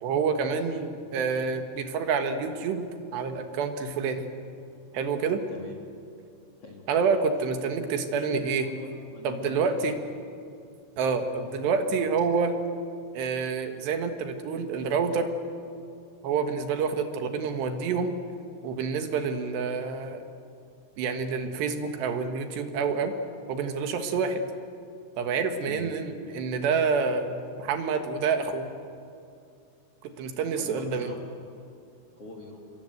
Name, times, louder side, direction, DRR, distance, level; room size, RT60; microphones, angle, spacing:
voice 1, 0.0-4.3 4.9-5.4 6.9-8.7 9.2-10.0 11.0-12.5 13.1-15.3 16.2-18.2 18.6-20.2 21.0-23.1 23.5-24.4 25.2-28.7 30.0-31.1, right 5 dB, 65° right, 6 dB, 3.3 m, -28 dB
voice 2, 8.6-10.1 25.6-25.9 30.5-31.2 32.1-32.6, left 3 dB, 40° left, 2 dB, 2.2 m, -44 dB
28.0 x 24.5 x 8.0 m, 2.5 s
omnidirectional pair, 6.0 m